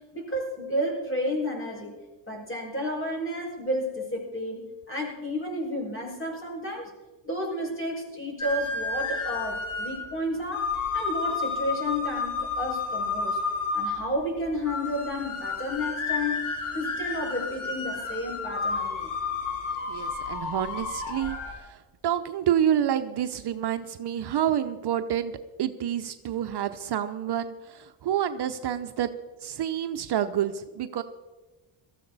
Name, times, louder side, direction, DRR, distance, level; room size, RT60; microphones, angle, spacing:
voice 1, 0.0-2.0 2.3-6.9 7.2-13.4 13.7-16.5 16.7-19.2, equal, 25° left, 0 dB, 5.7 m, -31 dB
sound 1, 8.4-21.5, left 4 dB, 75° left, 3.9 m, -31 dB
voice 2, 19.9-21.8 22.0-29.1 29.4-31.0, right 10 dB, 50° right, 8 dB, 0.8 m, -28 dB
18.0 x 14.0 x 4.1 m, 1.2 s
cardioid pair, 80°, 50 cm